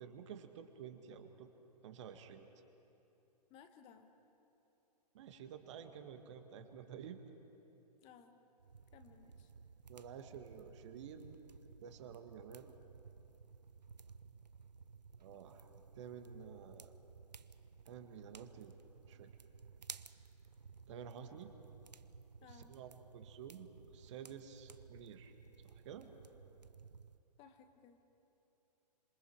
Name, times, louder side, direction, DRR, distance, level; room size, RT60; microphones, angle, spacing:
voice 1, 0.0-1.5 1.8-2.5 5.1-7.2 9.9-11.4 11.8-12.7 15.2-15.7 16.0-16.9 17.9-18.7 19.1-19.3 20.9-21.5 22.4-25.3 25.6-26.1, right 8 dB, 45° right, 6 dB, 1.9 m, -51 dB
voice 2, 3.5-4.1 8.0-8.4 8.9-9.5 22.4-22.8 27.4-28.0, left 7 dB, 25° left, 7 dB, 1.5 m, -60 dB
sound 1, 8.6-27.2, right 5 dB, 80° right, 0.8 m, -57 dB
26.5 x 26.5 x 4.8 m, 3.0 s
figure-of-eight pair, 120°, 21 cm